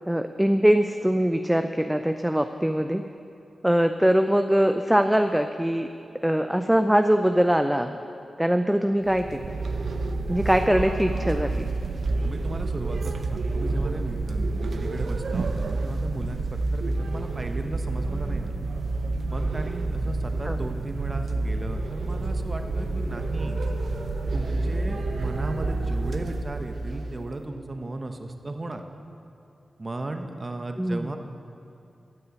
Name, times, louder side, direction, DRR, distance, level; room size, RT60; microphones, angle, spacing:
voice 1, 0.1-3.0 3.6-5.9 6.2-8.0 8.4-9.4 10.3-11.7 20.5-20.6 30.8-31.1, equal, 10° right, 7 dB, 0.5 m, -22 dB
sound 1, 9.1-27.3, right 2 dB, 70° right, 0.7 m, -29 dB
voice 2, 12.2-16.5 16.7-18.5 19.3-23.6 24.3-28.8 29.8-31.2, right 2 dB, 40° right, 5 dB, 1.1 m, -35 dB
sound 2, 20.6-27.8 28.2-28.5, left 1 dB, 60° left, 2.7 m, -44 dB
12.5 x 6.8 x 8.0 m, 2.6 s
cardioid pair, 40°, 0 cm